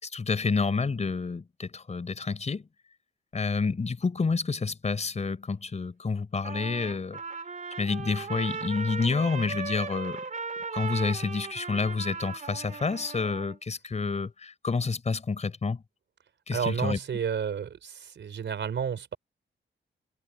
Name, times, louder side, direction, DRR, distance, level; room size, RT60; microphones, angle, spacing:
voice 1, 0.0-2.7 3.3-7.2 7.8-10.2 10.7-15.8 16.5-17.0, left 4 dB, 35° left, 4.5 m, -29 dB
Trumpet, 6.4-13.6, right 5 dB, 40° right, 2.9 m, -37 dB
voice 2, 16.5-19.2, right 7 dB, 65° right, 4.6 m, -31 dB
wide cardioid pair, 150°, 20 cm